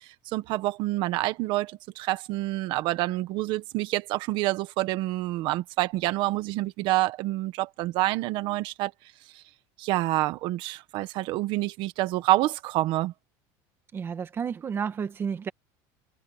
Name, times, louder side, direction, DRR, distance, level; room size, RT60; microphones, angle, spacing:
voice 1, 0.0-8.9 9.3-9.4 9.8-13.1, right 17 dB, 50° right, 1.4 m, -27 dB
voice 2, 13.9-15.5, right 7 dB, 20° right, 1.7 m, -31 dB
cardioid pair, 165°, 10 cm